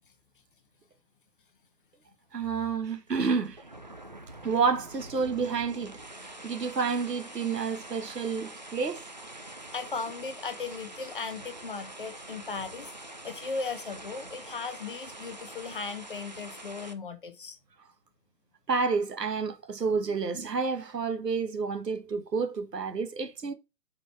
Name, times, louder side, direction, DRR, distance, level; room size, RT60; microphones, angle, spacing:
voice 1, 2.3-3.6 4.4-9.0 18.7-23.5, right 5 dB, 75° right, 1.2 m, -29 dB
sound 1, 3.1-16.9, right 1 dB, 30° right, 0.4 m, -45 dB
voice 2, 9.7-12.9 13.2-17.6, left 4 dB, 35° left, 0.7 m, -37 dB
7.7 x 4.5 x 3.1 m
figure-of-eight pair, 135°, 49 cm